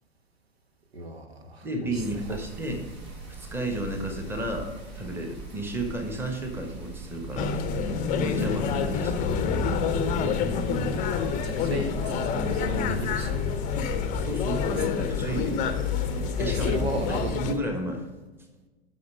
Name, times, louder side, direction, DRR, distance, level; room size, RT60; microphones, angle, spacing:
voice 1, 0.9-2.0 11.3-13.4 15.3-15.4 16.5-17.3, right 3 dB, 70° right, 6 dB, 1.2 m, -35 dB
voice 2, 1.6-2.9 3.3-4.7 4.9-7.8 8.2-9.5 14.2-15.6 16.4-18.1, right 1 dB, 5° right, 3 dB, 1.3 m, -32 dB
sound 1, 1.9-17.6, right 4 dB, 35° right, 3.2 m, -41 dB
sound 2, 7.4-17.5, left 6 dB, 25° left, 0.7 m, -27 dB
8.5 x 5.9 x 5.2 m, 1.2 s
figure-of-eight pair, 100°, 32 cm